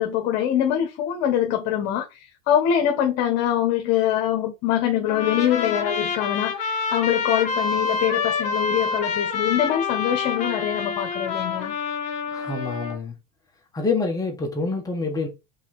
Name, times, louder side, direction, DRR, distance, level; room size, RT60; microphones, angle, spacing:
voice 1, 0.0-11.7, left 10 dB, 60° left, 1.4 m, -24 dB
Trumpet, 5.1-13.0, left 5 dB, 35° left, 1.9 m, -27 dB
voice 2, 12.3-13.1 13.7-15.3, left 3 dB, 15° left, 1.5 m, -26 dB
5.5 x 4.0 x 4.3 m
supercardioid pair, 135°, 21 cm